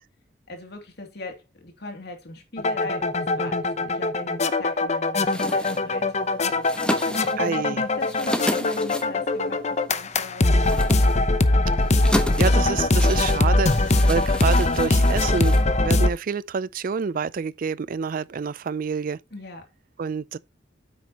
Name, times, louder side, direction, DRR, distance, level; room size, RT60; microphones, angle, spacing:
voice 1, 0.5-6.1 6.4-11.0 19.3-19.7, left 2 dB, 65° left, 2.8 m, -40 dB
sound 1, 2.6-16.1, left 2 dB, 40° left, 0.8 m, -21 dB
sound 2, 5.2-16.2, left 1 dB, 5° left, 1.1 m, -33 dB
voice 2, 7.4-7.8 12.0-19.2 20.0-20.4, right 5 dB, 50° right, 0.4 m, -28 dB
9.5 x 8.2 x 3.0 m
head